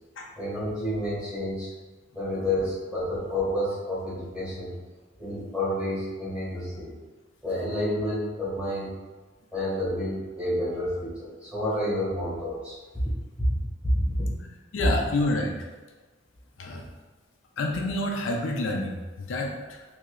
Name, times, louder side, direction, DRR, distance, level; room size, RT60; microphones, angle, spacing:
voice 1, 0.4-1.7 2.1-4.7 5.2-7.0 7.4-8.9 9.5-12.8 13.0-13.1 13.4-13.5 13.8-13.9 14.2-14.3, left 1 dB, 5° right, -10 dB, 1.5 m, -29 dB
voice 2, 14.7-15.6 16.6-16.8 17.6-19.8, left 2 dB, 75° left, 0 dB, 0.5 m, -28 dB
3.7 x 2.7 x 3.1 m, 1.3 s
head